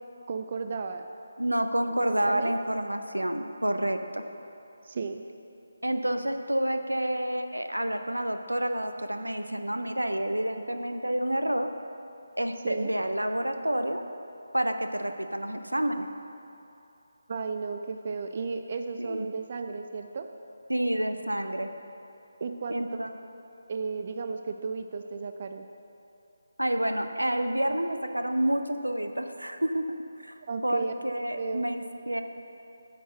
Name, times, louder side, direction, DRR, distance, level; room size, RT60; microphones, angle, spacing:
voice 1, 0.3-1.1 2.3-2.5 4.8-5.2 12.6-12.9 17.3-20.3 22.4-22.8 23.7-25.6 30.5-30.9 31.4-31.7, right 4 dB, 40° right, 7 dB, 0.3 m, -34 dB
voice 2, 1.4-4.2 5.8-11.7 12.4-14.0 14.5-16.1 19.0-19.3 20.7-21.7 22.7-23.1 26.6-29.8 30.2-30.3 30.6-32.2, right 1 dB, 85° right, 7 dB, 0.6 m, -29 dB
8.9 x 4.5 x 6.6 m, 2.7 s
figure-of-eight pair, 155°, 0 cm